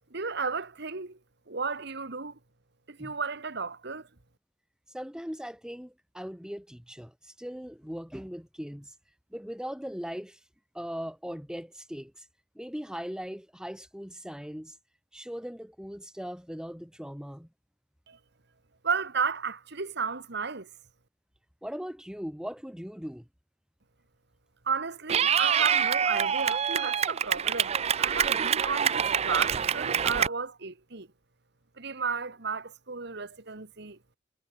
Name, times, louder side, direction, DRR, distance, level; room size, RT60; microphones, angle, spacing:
voice 1, 0.1-1.2 1.5-2.4 2.9-4.1 18.1-18.2 18.8-20.7 24.7-31.1 31.8-34.0, right 5 dB, 60° right, 1.9 m, -33 dB
voice 2, 4.9-8.9 9.3-10.4 10.7-12.3 12.6-14.8 15.1-17.5 21.6-23.3, equal, 5° right, 3.5 m, -39 dB
Clapping / Cheering, 25.1-30.3, right 8 dB, 35° right, 0.4 m, -26 dB
head